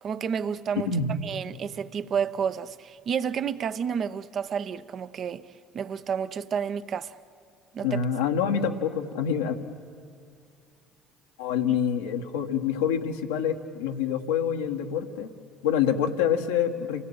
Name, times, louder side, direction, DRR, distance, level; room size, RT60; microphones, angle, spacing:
voice 1, 0.0-0.9 1.2-5.4 5.7-7.2 7.7-8.0 11.7-11.8, right 7 dB, 50° right, 0.9 m, -30 dB
voice 2, 7.8-9.6 11.4-15.3 15.6-17.0, left 8 dB, 85° left, 1.6 m, -26 dB
28.0 x 18.0 x 8.9 m
hypercardioid pair, 65°, 0 cm